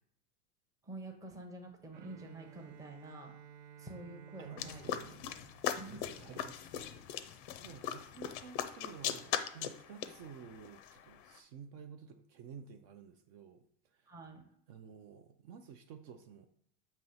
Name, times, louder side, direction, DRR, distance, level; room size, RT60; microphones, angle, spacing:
voice 1, 0.8-3.3 3.8-5.0 5.8-6.4 14.1-14.4, right 2 dB, 10° right, 2 dB, 0.7 m, -48 dB
Bowed string instrument, 1.9-6.8, right 8 dB, 85° right, 0.7 m, -55 dB
voice 2, 4.4-5.3 5.8-6.7 7.2-14.2 14.7-16.5, right 7 dB, 45° right, 6 dB, 0.6 m, -52 dB
sound 1, 4.6-11.4, left 10 dB, 40° left, 0.5 m, -40 dB
7.3 x 2.9 x 5.5 m, 0.70 s
supercardioid pair, 150°, 41 cm